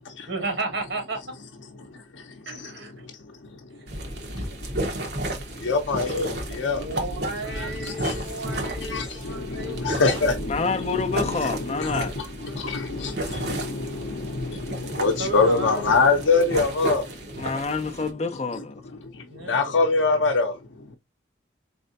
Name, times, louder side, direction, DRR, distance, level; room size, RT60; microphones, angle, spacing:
voice 1, 0.3-1.2 2.5-3.1 3.8-3.9 6.8-9.9 15.2-16.1 19.3-19.6, right 3 dB, 80° right, 1.7 m, -33 dB
voice 2, 1.8-2.7 3.0-7.0 7.4-17.5 18.5-18.6 19.0-21.0, left 3 dB, 85° left, 0.6 m, -26 dB
sound 1, 3.9-18.1, right 1 dB, 60° right, 1.3 m, -33 dB
voice 3, 10.5-12.2 13.3-13.5 17.4-18.8, left 4 dB, 35° left, 0.5 m, -28 dB
4.2 x 3.3 x 2.7 m
head